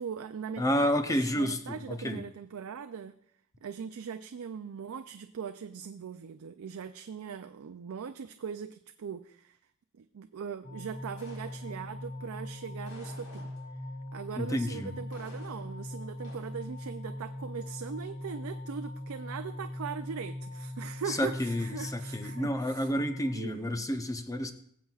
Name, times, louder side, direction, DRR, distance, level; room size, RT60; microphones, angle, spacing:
voice 1, 0.0-3.2 3.6-9.6 9.9-13.5 14.1-22.9 23.3-23.9, right 6 dB, 70° right, 9 dB, 0.4 m, -40 dB
voice 2, 0.6-2.2 14.4-14.9 21.1-24.5, equal, 15° left, 8 dB, 0.6 m, -30 dB
sound 1, 10.6-23.3, left 1 dB, 55° left, 3.8 m, -41 dB
sound 2, 11.2-12.0 12.9-13.9 15.1-15.8 16.2-16.6, left 1 dB, 75° left, 4.0 m, -54 dB
20.5 x 7.5 x 2.4 m, 0.68 s
head